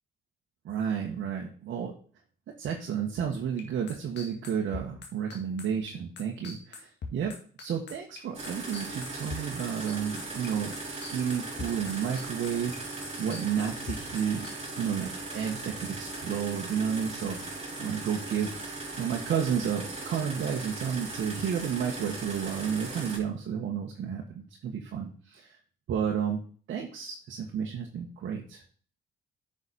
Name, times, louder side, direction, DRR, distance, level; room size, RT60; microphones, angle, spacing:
voice 1, 0.6-1.9 2.5-14.5 14.8-17.4 17.8-25.6 25.9-28.6, right 7 dB, 70° right, -1 dB, 1.7 m, -32 dB
sound 1, 3.3-10.5 10.7-14.5, left 4 dB, 60° left, 2.2 m, -41 dB
sound 2, 8.3-23.2, right 2 dB, 30° right, 4.4 m, -38 dB
9.9 x 6.3 x 4.3 m, 0.44 s
cardioid pair, 90°, 20 cm